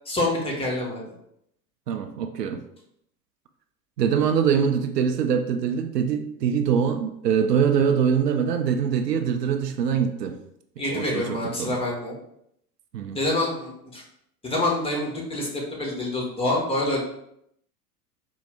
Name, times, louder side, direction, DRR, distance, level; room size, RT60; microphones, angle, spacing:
voice 1, 0.0-1.0 10.8-12.2 13.1-14.0 14.4-17.0, left 1 dB, 10° left, -3 dB, 0.9 m, -26 dB
voice 2, 1.9-2.6 4.0-10.3 10.9-11.8 12.9-13.2, right 7 dB, 75° right, 7 dB, 0.5 m, -23 dB
4.4 x 2.0 x 3.4 m, 0.75 s
figure-of-eight pair, 85°, 49 cm